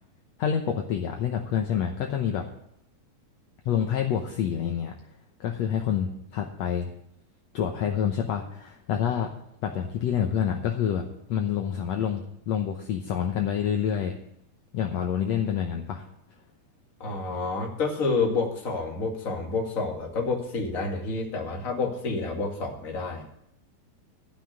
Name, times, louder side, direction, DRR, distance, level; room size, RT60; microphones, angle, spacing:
voice 1, 0.4-2.5 3.6-4.9 5.4-6.9 7.5-9.3 9.6-14.2 14.7-16.0, left 8 dB, 75° left, 3 dB, 1.6 m, -27 dB
voice 2, 17.0-23.3, left 3 dB, 30° left, 0 dB, 1.8 m, -29 dB
13.5 x 6.0 x 8.9 m, 0.74 s
omnidirectional pair, 4.3 m